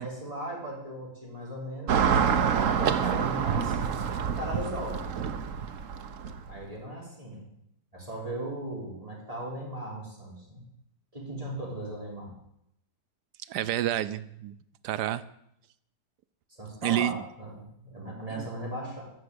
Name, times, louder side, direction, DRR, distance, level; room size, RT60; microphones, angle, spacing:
voice 1, 0.0-2.2 2.6-3.8 4.3-5.1 6.5-7.5 7.9-10.6 11.1-12.3 16.5-19.0, right 1 dB, 20° right, -3 dB, 4.1 m, -37 dB
Car passing by / Traffic noise roadway noise, 1.9-6.5, right 7 dB, 55° right, 1.1 m, -27 dB
voice 2, 13.5-14.5 14.8-15.2 16.8-17.2 18.3-18.5, right 13 dB, 85° right, 14 dB, 1.2 m, -29 dB
14.0 x 6.1 x 9.6 m, 0.76 s
omnidirectional pair, 1.7 m